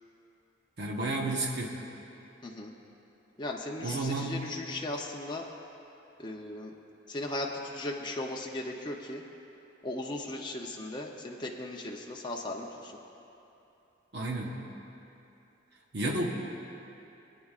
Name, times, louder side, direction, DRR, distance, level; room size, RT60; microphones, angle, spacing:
voice 1, 0.8-1.8 3.8-4.3 14.1-14.6 15.9-16.2, right 2 dB, 55° right, -1 dB, 1.1 m, -31 dB
voice 2, 3.4-5.5 6.2-6.8 7.1-9.2 9.8-13.0, left 2 dB, 20° left, -1 dB, 0.6 m, -37 dB
22.5 x 9.6 x 2.4 m, 2.9 s
head